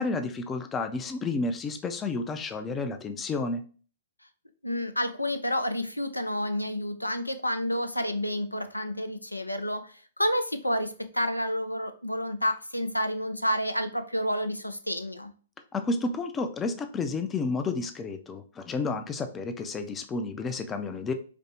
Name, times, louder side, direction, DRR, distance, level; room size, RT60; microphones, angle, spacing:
voice 1, 0.0-3.6 15.7-21.1, left 3 dB, 15° left, 8 dB, 0.5 m, -31 dB
voice 2, 4.6-15.3, equal, 90° left, 9 dB, 0.5 m, -29 dB
5.1 x 2.1 x 3.1 m, 0.40 s
figure-of-eight pair, 115°, 0 cm